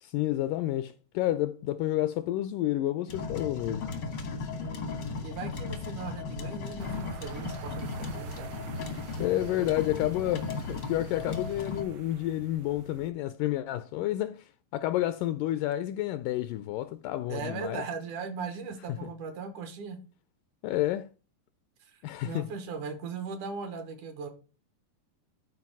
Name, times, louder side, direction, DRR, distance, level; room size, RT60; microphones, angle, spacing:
voice 1, 0.0-3.9 9.2-17.8 18.9-19.1 20.6-21.1 22.0-22.5, left 14 dB, 80° left, 1.9 m, -30 dB
sound 1, 3.1-11.8, left 4 dB, 65° left, 1.1 m, -36 dB
voice 2, 4.6-8.5 17.3-20.0 21.8-24.3, right 5 dB, 65° right, 2.5 m, -39 dB
sound 2, 6.8-13.1, right 8 dB, 90° right, 2.5 m, -46 dB
12.0 x 4.7 x 4.6 m
omnidirectional pair, 4.1 m